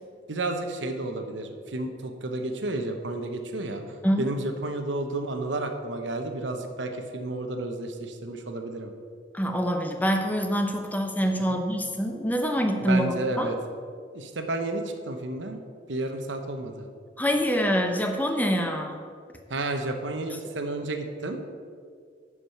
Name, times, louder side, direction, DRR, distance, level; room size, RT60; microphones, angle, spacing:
voice 1, 0.3-8.9 11.5-11.6 12.9-13.5 14.1-15.6 15.9-16.9 19.5-21.4, right 2 dB, 90° right, 5 dB, 0.9 m, -31 dB
voice 2, 9.3-13.5 17.2-19.0, equal, 10° left, 4 dB, 0.7 m, -25 dB
10.5 x 4.9 x 5.6 m, 2.1 s
head